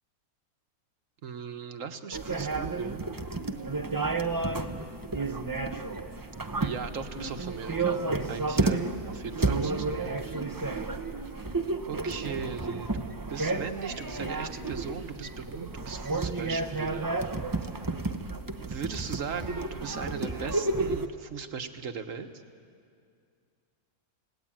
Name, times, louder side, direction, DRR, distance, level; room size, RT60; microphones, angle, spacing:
voice 1, 1.2-3.1 6.6-8.0 8.3-10.4 11.8-17.2 18.6-22.4, right 6 dB, 60° right, 7 dB, 1.5 m, -38 dB
sound 1, 2.1-21.1, right 3 dB, 20° right, 0.5 m, -31 dB
29.5 x 18.0 x 8.9 m, 2.4 s
omnidirectional pair, 1.6 m